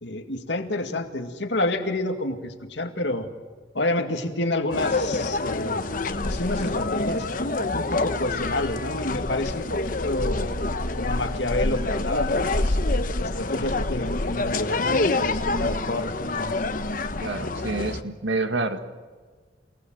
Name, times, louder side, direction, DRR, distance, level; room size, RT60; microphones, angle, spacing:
voice 1, 0.0-3.3 3.7-5.9 6.2-7.3 7.7-10.5 10.9-12.8 13.2-16.5, left 2 dB, 70° left, 6 dB, 2.1 m, -29 dB
sound 1, 4.7-18.0, left 2 dB, 45° left, 1.0 m, -26 dB
voice 2, 17.2-18.8, right 3 dB, 80° right, 8 dB, 1.8 m, -28 dB
28.0 x 18.5 x 7.7 m, 1.5 s
head